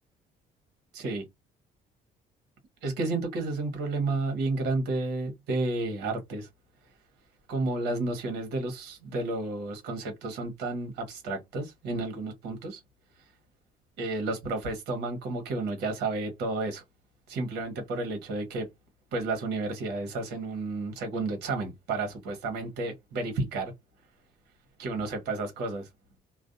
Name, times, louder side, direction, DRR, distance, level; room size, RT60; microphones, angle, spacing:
voice 1, 0.9-1.2 2.8-6.5 7.5-12.8 14.0-16.8 17.3-18.7 19.1-23.7 24.8-25.9, right 3 dB, 85° right, 1.0 m, -31 dB
2.4 x 2.0 x 2.5 m
cardioid pair, 110°, 17 cm